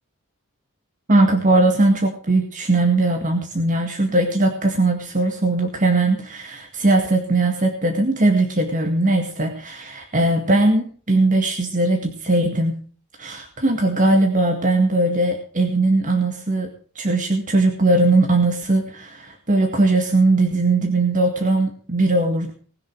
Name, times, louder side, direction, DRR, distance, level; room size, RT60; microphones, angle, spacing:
voice 1, 1.1-12.7 13.2-16.7 17.0-22.5, right 2 dB, 35° right, 3 dB, 1.9 m, -19 dB
19.5 x 7.4 x 6.3 m, 0.43 s
head